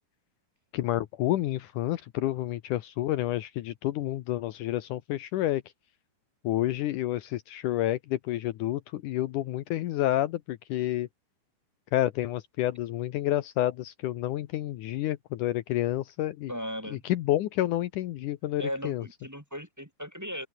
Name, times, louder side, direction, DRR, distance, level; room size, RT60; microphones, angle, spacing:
voice 1, 0.7-5.6 6.4-11.1 11.9-16.5 16.9-19.0, left 14 dB, 75° left, 2.4 m, -29 dB
voice 2, 16.5-17.0 18.6-20.5, equal, 5° right, 6.4 m, -37 dB
open air
omnidirectional pair, 3.8 m